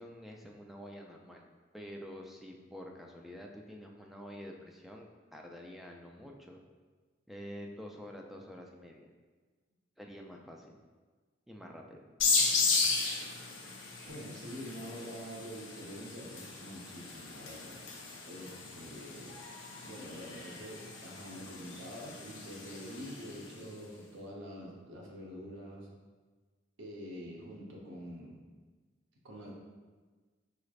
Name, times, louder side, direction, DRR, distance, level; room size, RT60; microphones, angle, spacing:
voice 1, 0.0-1.5 1.7-6.6 7.3-9.1 10.0-10.7 11.5-12.1, equal, ahead, 0 dB, 0.3 m, -48 dB
sound 1, 12.2-23.5, left 4 dB, 80° left, 0.7 m, -35 dB
voice 2, 14.1-17.8 18.3-19.4 19.8-25.9 26.8-28.4 29.2-29.5, equal, 70° right, -2 dB, 0.8 m, -46 dB
4.9 x 3.2 x 2.4 m, 1.4 s
head